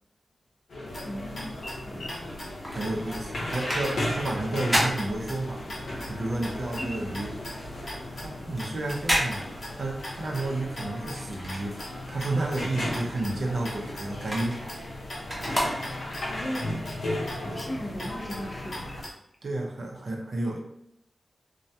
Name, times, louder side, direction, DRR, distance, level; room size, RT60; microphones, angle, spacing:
sound 1, 0.7-19.0, left 1 dB, 85° left, 0.6 m, -36 dB
sound 2, 0.9-19.1, left 1 dB, 50° left, 0.9 m, -42 dB
voice 1, 1.0-1.6 1.8-2.0 6.8-7.2 16.2-16.9 17.4-18.9, equal, 25° left, 0 dB, 0.5 m, -37 dB
sound 3, 2.3-5.9 6.2-12.2 12.5-16.3 16.8-16.9, equal, 15° right, 0.8 m, -33 dB
voice 2, 2.7-5.6 6.0-7.3 8.1-11.8 12.1-14.7 15.5-15.8 17.5-17.6 19.4-20.6, right 2 dB, 55° right, 0 dB, 0.5 m, -31 dB
2.2 x 2.2 x 2.7 m, 0.76 s
wide cardioid pair, 95°, 0 cm